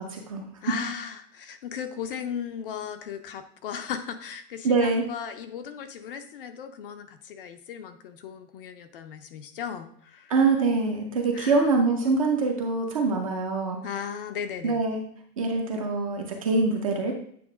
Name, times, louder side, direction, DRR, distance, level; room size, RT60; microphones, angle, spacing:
voice 1, 0.0-0.4 4.6-5.0 10.3-13.8 14.6-15.0 15.4-17.1, right 3 dB, 25° right, 2 dB, 0.4 m, -24 dB
voice 2, 0.6-10.3 11.3-11.7 13.8-14.8, left 8 dB, 40° left, 9 dB, 0.5 m, -36 dB
8.7 x 3.2 x 4.9 m, 0.63 s
supercardioid pair, 170°, 45 cm